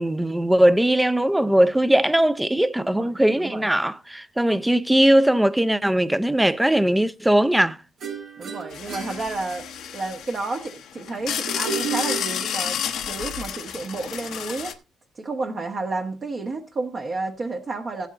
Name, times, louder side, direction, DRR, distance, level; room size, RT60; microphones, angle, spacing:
voice 1, 0.0-7.8, right 1 dB, 5° right, 0.5 m, -20 dB
voice 2, 2.8-3.7 8.4-9.7 9.9-14.8 15.2-18.1, right 3 dB, 40° right, 1.1 m, -31 dB
sound 1, 8.0-10.0 11.4-13.0, right 6 dB, 65° right, 2.7 m, -33 dB
sound 2, 8.7-14.7, left 9 dB, 80° left, 0.9 m, -31 dB
16.0 x 8.1 x 2.5 m
cardioid pair, 90°, 0 cm